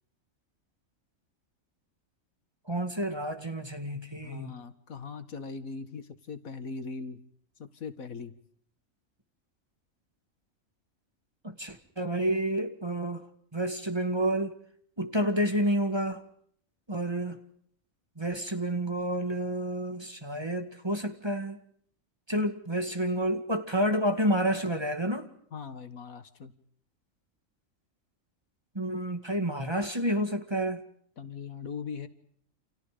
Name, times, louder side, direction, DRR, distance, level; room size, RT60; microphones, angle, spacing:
voice 1, 2.7-4.5 11.4-13.2 13.5-14.5 15.0-16.2 16.9-17.4 18.2-21.6 22.3-25.3 28.7-30.8, right 1 dB, 20° right, 2.1 m, -29 dB
voice 2, 4.2-7.2 7.6-8.3 25.5-26.5 31.2-32.1, left 5 dB, 85° left, 2.1 m, -40 dB
29.5 x 28.5 x 5.2 m
omnidirectional pair, 1.4 m